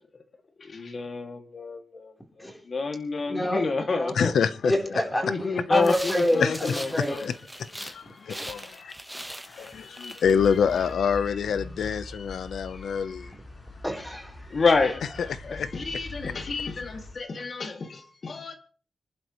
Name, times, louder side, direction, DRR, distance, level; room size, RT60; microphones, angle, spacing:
voice 1, 0.6-4.3 5.2-7.3 8.1-10.2 11.2-12.3 12.5-13.3 14.5-18.5, left 4 dB, 50° left, 2.6 m, -30 dB
voice 2, 3.3-3.6 3.9-4.1 4.6-7.3 8.3-8.5 13.8-14.5, equal, 10° left, 4.1 m, -28 dB
voice 3, 4.1-4.7 6.4-7.3 7.8-8.9 9.5-13.3 15.5-15.7, left 7 dB, 90° left, 1.0 m, -26 dB
sound 1, 5.8-8.0 8.3-10.9, right 1 dB, 5° right, 1.4 m, -41 dB
sound 2, 10.2-17.2, left 2 dB, 25° left, 7.8 m, -43 dB
26.0 x 11.5 x 3.3 m
cardioid pair, 90°, 0 cm